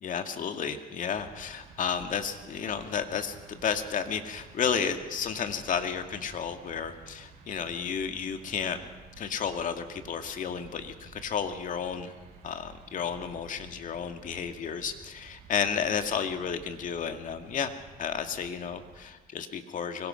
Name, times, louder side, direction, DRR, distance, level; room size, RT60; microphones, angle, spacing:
voice 1, 0.0-8.8 9.1-12.1 12.4-17.7 18.0-20.1, left 7 dB, 50° left, 7 dB, 2.2 m, -32 dB
sound 1, 1.1-19.1, right 5 dB, 65° right, 6.8 m, -52 dB
24.5 x 22.0 x 5.8 m, 1.2 s
cardioid pair, 110°, 17 cm